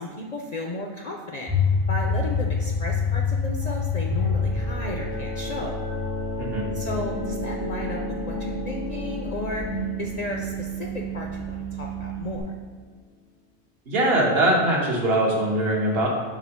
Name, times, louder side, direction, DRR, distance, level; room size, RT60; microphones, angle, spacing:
voice 1, 0.0-1.5 1.9-5.8 6.7-8.0 8.3-9.7 10.0-12.4, left 2 dB, 50° left, 0 dB, 0.5 m, -34 dB
sound 1, 1.5-12.4, left 3 dB, 25° right, 0.7 m, -28 dB
sound 2, 4.0-12.5, left 2 dB, 85° left, 1.0 m, -36 dB
voice 2, 6.4-6.7 13.9-16.1, right 1 dB, 65° right, -3 dB, 1.4 m, -22 dB
4.9 x 3.8 x 5.6 m, 1.5 s
omnidirectional pair, 1.1 m